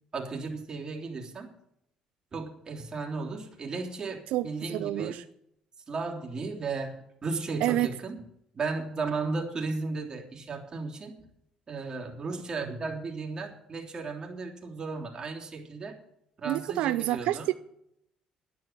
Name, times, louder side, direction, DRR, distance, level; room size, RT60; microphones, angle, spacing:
voice 1, 0.1-1.5 2.3-5.2 5.9-8.2 8.5-11.2 11.7-16.0 16.4-17.4, right 4 dB, 35° right, 0 dB, 3.3 m, -35 dB
voice 2, 4.3-5.2 7.6-7.9 16.5-17.5, right 15 dB, 80° right, 12 dB, 0.5 m, -28 dB
10.5 x 10.5 x 7.5 m, 0.75 s
cardioid pair, 90°, 2 cm